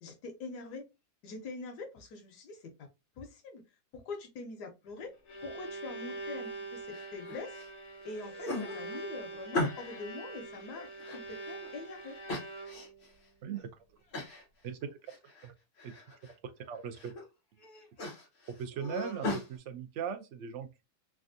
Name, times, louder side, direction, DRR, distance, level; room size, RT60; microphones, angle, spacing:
voice 1, 0.0-0.8 1.2-2.7 3.2-3.6 3.9-5.1 5.4-7.6 8.0-10.9 11.1-12.2, left 3 dB, 85° left, 1.3 m, -44 dB
Bowed string instrument, 5.0-13.1, right 2 dB, 70° left, 1.5 m, -44 dB
sound 1, 6.9-7.7 8.1-10.1 10.5-11.7 12.3-13.1 13.5-13.6 14.1-14.4 14.8-15.5 15.8-16.3 16.8-17.2 17.6-19.5, left 2 dB, 40° left, 1.0 m, -38 dB
voice 2, 13.4-14.0 14.6-14.9 15.4-15.5 15.8-15.9 16.2-16.3 16.6-17.1 18.6-20.8, right 7 dB, 70° right, 0.7 m, -39 dB
3.3 x 2.4 x 2.5 m
omnidirectional pair, 1.7 m